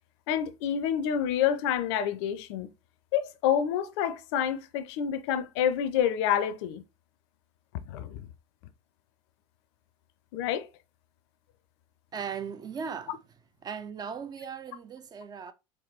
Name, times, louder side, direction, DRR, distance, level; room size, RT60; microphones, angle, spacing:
voice 1, 0.3-2.7 3.1-6.8 7.9-8.3 10.3-10.7, left 9 dB, 55° left, 0.5 m, -28 dB
voice 2, 12.1-13.2 13.6-15.5, right 6 dB, 25° right, 0.4 m, -38 dB
4.6 x 3.2 x 2.9 m
figure-of-eight pair, 70°, 17 cm